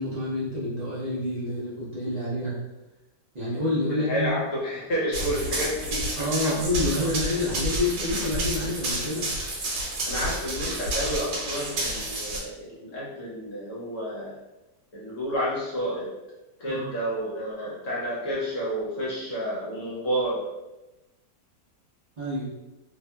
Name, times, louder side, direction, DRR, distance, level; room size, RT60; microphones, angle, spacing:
voice 1, 0.0-2.6 3.3-4.3 6.2-9.3 16.7-16.9 22.2-22.5, left 1 dB, 60° right, -9 dB, 0.4 m, -28 dB
voice 2, 3.9-6.5 10.0-14.3 14.9-16.1 16.6-20.4, equal, 60° left, -6 dB, 0.9 m, -30 dB
Run, 5.1-12.4, right 1 dB, 80° right, 1.3 m, -30 dB
2.7 x 2.6 x 2.2 m, 1.0 s
omnidirectional pair, 1.8 m